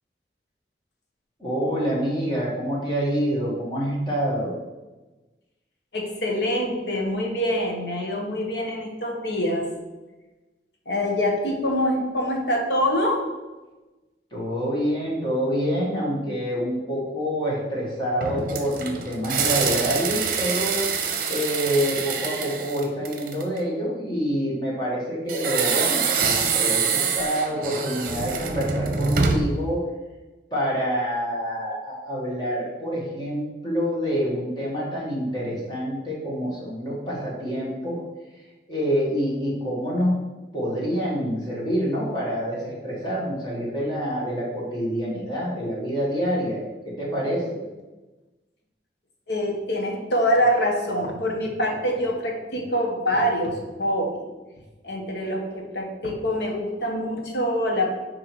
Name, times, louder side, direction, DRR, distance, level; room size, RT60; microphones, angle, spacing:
voice 1, 1.4-4.5 14.3-20.8 21.3-29.8 30.5-38.0 38.7-40.2 40.5-47.6, equal, 25° left, -5 dB, 1.9 m, -27 dB
voice 2, 5.9-9.7 10.9-13.2 26.2-26.4 49.3-54.3 54.8-57.9, equal, 70° left, 1 dB, 1.3 m, -25 dB
sound 1, 18.2-23.6 25.3-29.6, right 5 dB, 50° right, 0.8 m, -25 dB
6.3 x 4.8 x 4.7 m, 1.1 s
head